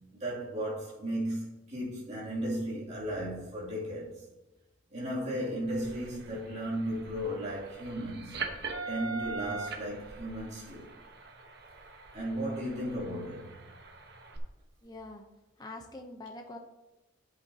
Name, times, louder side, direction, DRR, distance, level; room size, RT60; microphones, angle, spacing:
voice 1, 0.2-4.3 4.9-8.4 8.9-10.9 12.1-13.7, equal, 35° right, 2.6 m, -35 dB
sound 1, 5.7-14.4, right 4 dB, 55° right, 1.1 m, -42 dB
voice 2, 14.8-15.2 15.6-16.6, left 2 dB, 20° left, 0.7 m, -44 dB
10.0 x 8.4 x 2.8 m
head